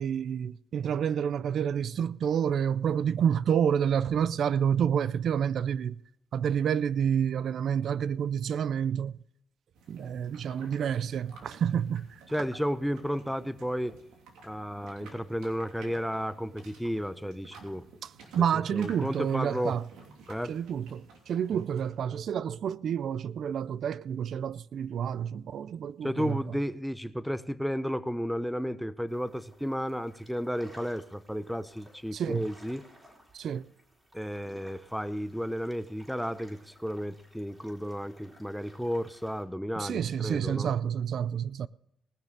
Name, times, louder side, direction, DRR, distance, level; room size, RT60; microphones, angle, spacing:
voice 1, 0.0-6.0 6.3-9.2 9.9-12.1 18.0-18.1 18.3-19.8 20.5-26.4 32.1-32.4 33.3-33.7 39.8-41.7, right 8 dB, 65° right, 0.4 m, -29 dB
sound 1, 9.7-22.0, right 4 dB, 90° right, 2.9 m, -52 dB
voice 2, 12.3-14.0 14.4-17.9 18.5-19.8 20.3-20.6 21.5-21.6 26.0-32.8 34.1-40.7, equal, ahead, 0.7 m, -33 dB
sound 2, 29.1-39.4, equal, 15° right, 3.6 m, -57 dB
19.5 x 6.6 x 6.6 m
cardioid pair, 90°, 0 cm